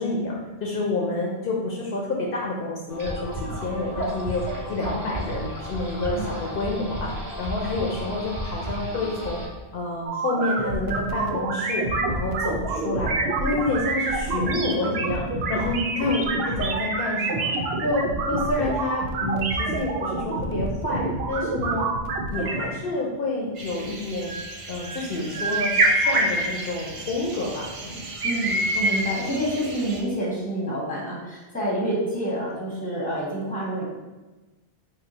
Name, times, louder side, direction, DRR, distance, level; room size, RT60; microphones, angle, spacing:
voice 1, 0.0-7.1 7.4-9.4 9.7-17.5 17.8-21.9 22.3-24.3 24.7-28.0, left 2 dB, 65° left, -3 dB, 0.7 m, -28 dB
sound 1, 2.9-9.5, equal, 20° right, 0.7 m, -33 dB
sound 2, 10.1-22.7, right 3 dB, 75° right, 0.8 m, -27 dB
sound 3, 23.6-30.0, right 1 dB, 50° right, 0.4 m, -27 dB
voice 2, 28.2-33.8, right 1 dB, 10° left, -6 dB, 0.9 m, -28 dB
3.8 x 2.1 x 4.0 m, 1.2 s
omnidirectional pair, 1.1 m